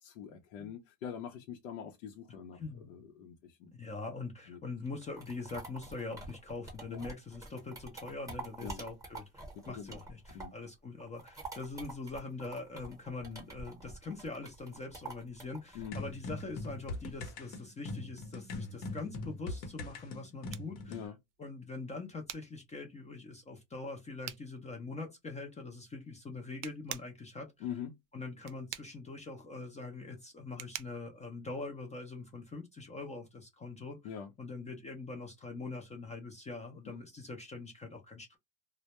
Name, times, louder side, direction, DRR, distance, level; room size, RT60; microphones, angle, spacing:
voice 1, 0.0-3.7 4.5-4.6 6.9-7.0 8.6-8.8 9.6-10.0 10.3-10.5 15.7-15.9 20.9-21.2 27.6-27.9 34.0-34.3, left 8 dB, 90° left, 0.7 m, -44 dB
voice 2, 3.7-9.3 9.7-21.1 21.4-27.5 28.1-38.4, left 3 dB, 15° left, 0.4 m, -43 dB
sound 1, 4.9-10.7 11.0-17.3, right 3 dB, 10° right, 0.8 m, -47 dB
sound 2, 15.9-21.1, left 2 dB, 60° left, 0.9 m, -41 dB
sound 3, 20.3-32.3, right 14 dB, 65° right, 0.5 m, -50 dB
2.1 x 2.1 x 2.8 m
cardioid pair, 140°, 42 cm